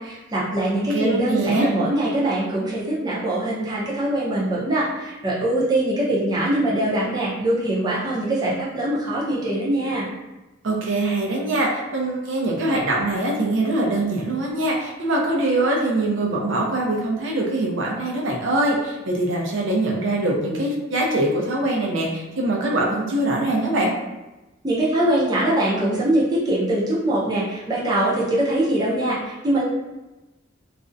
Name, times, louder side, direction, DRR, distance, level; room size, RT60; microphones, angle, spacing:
voice 1, 0.0-10.1 24.6-29.6, right 1 dB, 20° right, -7 dB, 0.5 m, -22 dB
voice 2, 0.9-1.7 10.6-23.9, right 2 dB, 70° right, -2 dB, 0.5 m, -23 dB
2.4 x 2.0 x 2.5 m, 1.0 s
head